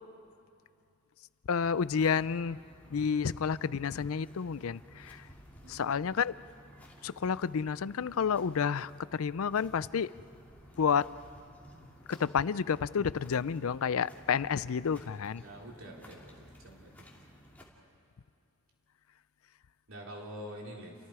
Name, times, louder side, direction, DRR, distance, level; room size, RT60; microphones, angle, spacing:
voice 1, 1.5-2.6 2.9-5.3 5.7-6.3 7.0-10.1 10.8-11.1 12.1-15.4, left 6 dB, 75° left, 18 dB, 0.5 m, -30 dB
sound 1, 1.6-17.6, equal, 5° left, 2.6 m, -55 dB
voice 2, 5.6-6.0 15.4-16.9 19.9-20.9, equal, 65° right, -1 dB, 3.6 m, -46 dB
30.0 x 24.5 x 4.9 m, 2.6 s
head